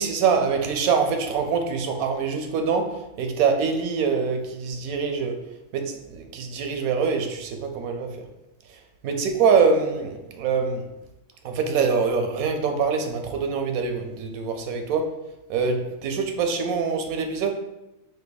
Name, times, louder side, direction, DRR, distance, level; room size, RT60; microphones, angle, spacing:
voice 1, 0.0-5.4 5.7-8.3 8.7-10.9 11.4-15.1 15.5-17.5, right 5 dB, 85° right, 5 dB, 1.1 m, -24 dB
5.0 x 2.7 x 3.9 m, 0.98 s
omnidirectional pair, 1.5 m